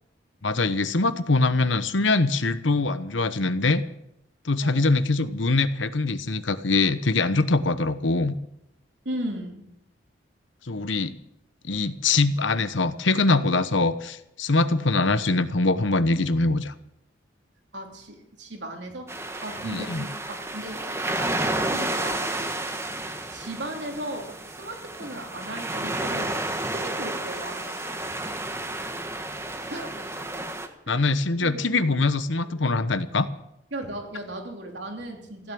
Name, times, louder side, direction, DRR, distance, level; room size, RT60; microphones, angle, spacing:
voice 1, 0.4-3.8 4.4-8.4 10.7-11.2 11.6-16.7 19.7-20.0 30.9-33.3, left 3 dB, 85° left, 12 dB, 1.0 m, -23 dB
voice 2, 9.0-9.7 17.7-19.1 19.4-20.9 21.2-22.6 23.3-26.3 26.6-27.7 29.7-30.1 30.9-31.0 31.4-31.7 33.7-35.5, right 1 dB, 70° right, 2 dB, 3.1 m, -36 dB
sound 1, 19.1-30.7, right 2 dB, 15° right, 1.2 m, -31 dB
15.5 x 10.5 x 8.6 m, 0.81 s
head